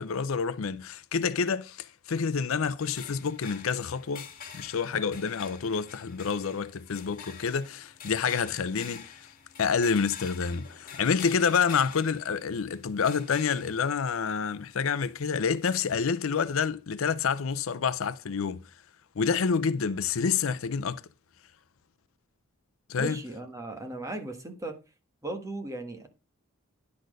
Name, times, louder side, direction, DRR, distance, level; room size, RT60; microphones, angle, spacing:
voice 1, 0.0-4.3 4.5-9.3 9.6-18.7 19.2-21.0 22.9-23.2, left 6 dB, 65° left, 0.5 m, -28 dB
sound 1, 2.8-16.0, left 7 dB, 40° left, 2.1 m, -47 dB
voice 2, 22.9-24.7 25.2-26.1, right 2 dB, 15° right, 1.4 m, -37 dB
10.5 x 4.3 x 6.3 m
head